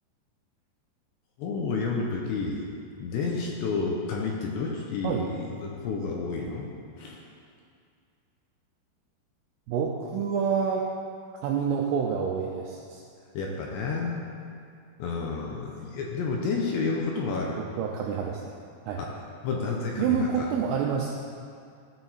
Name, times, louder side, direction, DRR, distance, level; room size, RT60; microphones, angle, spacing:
voice 1, 1.4-2.6 3.0-6.7 7.0-7.2 13.3-14.2 15.0-17.6 19.0-19.1 19.4-20.5, left 4 dB, 80° left, -1 dB, 3.0 m, -30 dB
voice 2, 9.7-10.9 11.4-13.0 17.5-18.5 18.9-19.0 20.0-21.2, right 6 dB, 85° right, -2 dB, 2.5 m, -28 dB
13.5 x 4.9 x 4.1 m, 2.3 s
omnidirectional pair, 5.2 m